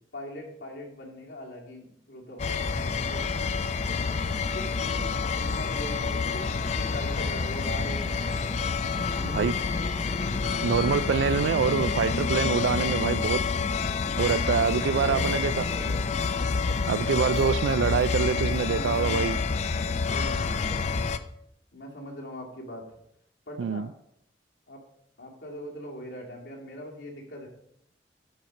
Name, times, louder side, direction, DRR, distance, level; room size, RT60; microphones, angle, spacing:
voice 1, 0.1-3.6 3.9-4.0 4.4-8.6 9.1-9.8 14.7-16.2 16.6-16.9 18.0-19.5 20.0-20.8 21.7-23.0 23.5-23.9 24.7-24.8 25.2-27.5, equal, 80° left, 2.4 m, -41 dB
sound 1, 2.4-21.2, left 5 dB, 40° left, 0.4 m, -28 dB
voice 2, 10.6-13.4 14.2-15.6 16.9-19.4 23.6-23.9, right 6 dB, 85° right, 0.3 m, -25 dB
11.5 x 4.4 x 5.3 m
head